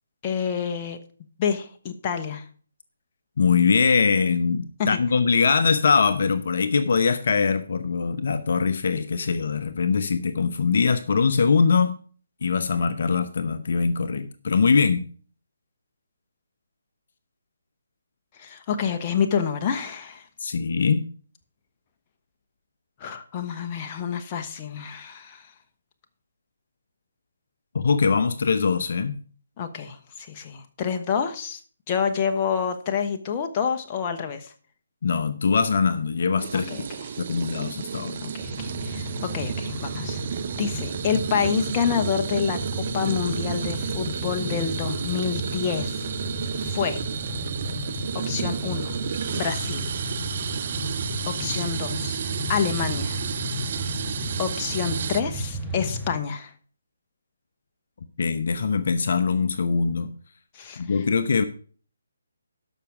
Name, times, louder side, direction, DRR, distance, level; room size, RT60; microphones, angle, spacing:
voice 1, 0.2-1.0 1.4-2.4 4.8-5.0 18.4-20.2 23.0-25.4 29.6-31.6 31.9-34.5 36.7-37.2 38.2-40.2 40.6-46.0 46.6-47.0 48.3-49.0 49.3-49.9 51.3-52.2 52.5-53.2 54.4-56.5 60.5-60.8, left 7 dB, 25° left, 5 dB, 1.1 m, -28 dB
voice 2, 3.4-12.0 12.4-15.0 20.4-21.0 27.7-29.1 35.0-36.7 37.2-38.2 58.2-60.1 60.8-61.5, left 5 dB, 55° left, 9 dB, 0.9 m, -22 dB
sound 1, 36.4-55.2, right 7 dB, 45° right, 0.7 m, -32 dB
sound 2, 38.4-56.2, equal, ahead, 1.4 m, -33 dB
12.5 x 5.9 x 4.9 m, 0.44 s
figure-of-eight pair, 150°, 0 cm